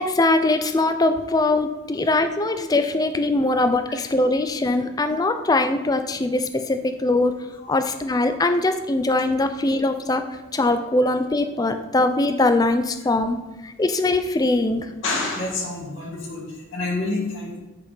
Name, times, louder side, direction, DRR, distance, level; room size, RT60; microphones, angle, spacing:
voice 1, 0.0-7.3 7.7-10.3 10.5-14.9, left 2 dB, 20° left, 8 dB, 0.4 m, -21 dB
voice 2, 7.6-8.2 10.6-10.7 15.0-17.6, left 2 dB, 70° left, -2 dB, 1.8 m, -29 dB
9.1 x 3.4 x 5.7 m, 1.1 s
head